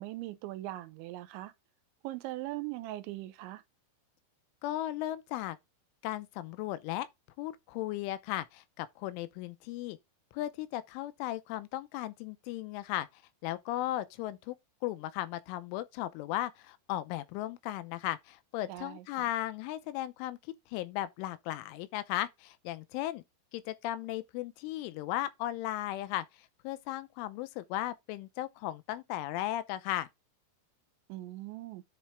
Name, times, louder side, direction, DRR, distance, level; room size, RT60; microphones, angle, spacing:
voice 1, 0.0-1.5 2.0-3.6 18.7-19.3 31.1-31.8, right 17 dB, 80° right, 3.0 m, -40 dB
voice 2, 4.6-5.6 6.0-7.1 7.4-10.0 10.3-14.6 14.8-20.4 20.7-23.2 23.5-30.1, left 14 dB, 85° left, 3.1 m, -36 dB
10.0 x 4.3 x 3.5 m
omnidirectional pair, 5.7 m